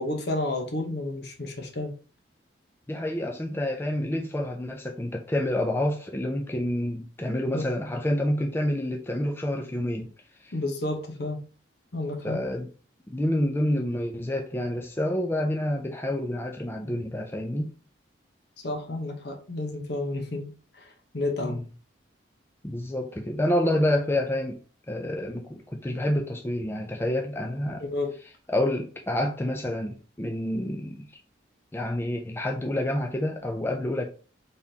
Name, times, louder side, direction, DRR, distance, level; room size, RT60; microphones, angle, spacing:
voice 1, 0.0-1.9 7.5-7.7 10.5-11.4 11.9-12.4 18.6-20.5 20.8-20.9 21.1-21.6 27.8-28.1, left 2 dB, 60° left, 0.9 m, -31 dB
voice 2, 2.9-10.1 10.4-10.5 12.2-12.7 13.1-17.7 21.4-21.6 22.6-24.6 24.9-27.8 28.5-31.1 31.7-34.1, left 1 dB, 10° left, 0.4 m, -28 dB
4.2 x 3.4 x 2.7 m
head